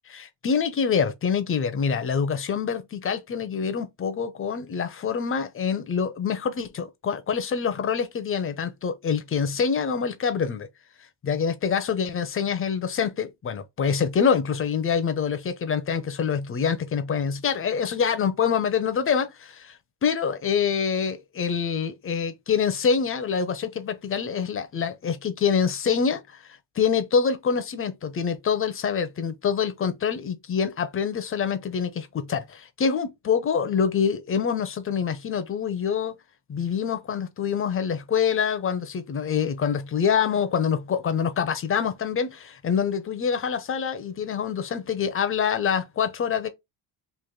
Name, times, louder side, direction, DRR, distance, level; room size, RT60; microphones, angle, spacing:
voice 1, 0.1-10.7 11.2-19.8 20.0-26.4 26.8-36.2 36.5-46.5, left 6 dB, 30° left, 0.6 m, -26 dB
3.2 x 2.5 x 3.7 m
cardioid pair, 125°, 47 cm